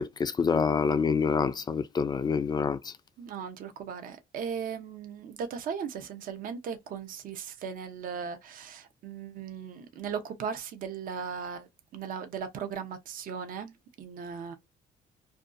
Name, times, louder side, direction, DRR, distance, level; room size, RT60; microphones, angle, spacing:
voice 1, 0.0-2.9, left 5 dB, 25° left, 0.3 m, -27 dB
voice 2, 3.2-14.6, right 7 dB, 55° right, 0.6 m, -37 dB
2.6 x 2.2 x 2.4 m
cardioid pair, 110°, 17 cm